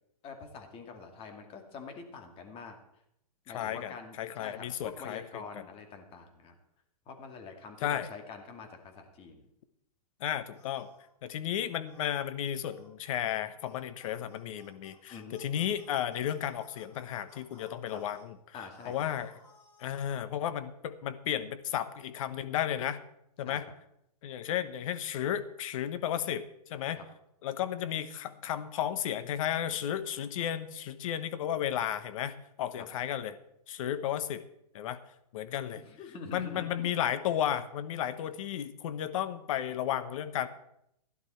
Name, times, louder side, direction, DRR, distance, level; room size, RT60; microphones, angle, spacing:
voice 1, 0.2-2.8 3.5-6.6 7.1-9.5 15.1-15.4 17.9-18.0 18.5-18.9 23.4-23.6 26.9-27.0 32.8-32.9 35.8-36.9, left 5 dB, 25° left, 4 dB, 2.5 m, -45 dB
voice 2, 3.5-3.9 4.2-5.4 7.8-8.1 10.2-10.9 11.2-18.4 18.9-19.3 19.8-23.0 23.4-23.7 24.2-27.0 27.4-33.4 33.7-34.4 34.7-35.0 35.3-35.8 36.3-40.5, left 10 dB, 55° left, 12 dB, 1.2 m, -33 dB
sound 1, 10.5-11.1 11.9-12.2 12.7-12.9 13.2-13.4 13.6-18.2 18.7-20.2, left 2 dB, 90° left, 5.4 m, -60 dB
16.0 x 11.0 x 4.4 m, 0.77 s
hypercardioid pair, 130°, 21 cm